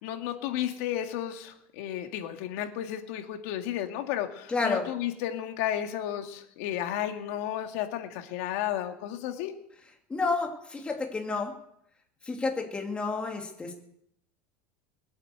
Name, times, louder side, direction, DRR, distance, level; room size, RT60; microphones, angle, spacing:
voice 1, 0.0-9.6, left 11 dB, 70° left, 5 dB, 2.1 m, -33 dB
voice 2, 4.5-4.8 10.1-11.5 12.3-13.7, left 3 dB, 15° left, 2 dB, 2.6 m, -30 dB
21.0 x 8.8 x 7.8 m, 0.75 s
supercardioid pair, 145°, 7 cm